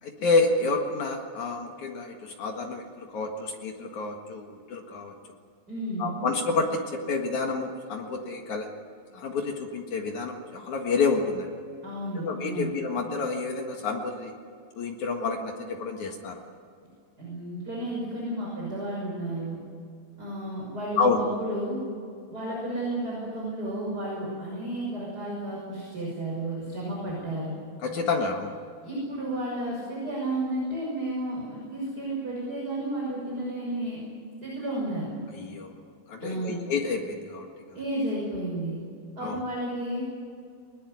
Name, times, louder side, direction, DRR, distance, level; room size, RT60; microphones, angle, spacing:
voice 1, 0.0-5.1 6.0-8.7 9.1-11.5 12.1-14.3 14.8-16.4 21.0-21.2 27.8-28.5 35.3-35.7 36.1-37.8 39.2-39.4, left 4 dB, 60° left, 3 dB, 2.1 m, -29 dB
voice 2, 5.7-6.1 11.8-12.7 16.8-16.9 17.2-19.6 20.2-21.8 22.3-27.5 28.8-34.0 34.4-35.1 36.2-36.6 37.7-38.8 39.2-40.0, right 1 dB, 20° right, -4 dB, 6.2 m, -32 dB
22.0 x 20.5 x 9.6 m, 2.3 s
omnidirectional pair, 5.8 m